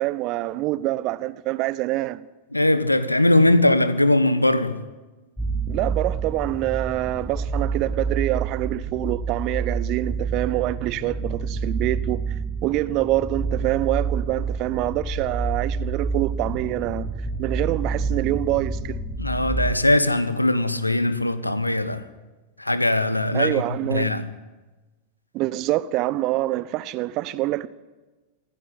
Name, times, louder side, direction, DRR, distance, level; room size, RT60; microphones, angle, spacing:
voice 1, 0.0-2.2 5.7-12.2 12.6-17.1 17.4-19.0 23.3-24.2 25.3-27.7, right 16 dB, 40° right, 1.1 m, -26 dB
voice 2, 2.5-4.8 19.2-22.0 22.6-23.6 23.9-24.2, left 1 dB, 85° left, 1.4 m, -20 dB
sound 1, 5.4-19.7, right 4 dB, ahead, 1.9 m, -28 dB
26.0 x 16.5 x 9.8 m
figure-of-eight pair, 90°, 0 cm